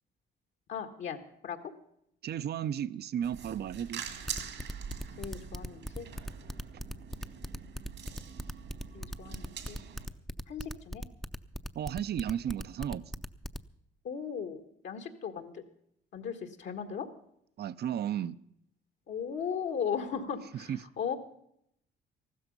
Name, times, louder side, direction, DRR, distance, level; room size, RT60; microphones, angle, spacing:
voice 1, 0.7-1.6 5.2-6.1 8.9-9.8 10.5-11.1 14.0-15.6 16.1-17.1 19.1-21.1, left 7 dB, 70° left, 1.6 m, -37 dB
voice 2, 2.2-4.0 11.7-13.0 17.6-18.4 20.7-20.8, right 9 dB, 55° right, 0.6 m, -34 dB
sound 1, 3.2-10.1, right 7 dB, 70° right, 2.0 m, -44 dB
sound 2, 4.3-13.6, equal, ahead, 0.6 m, -38 dB
14.5 x 13.0 x 5.3 m
cardioid pair, 90°, 20 cm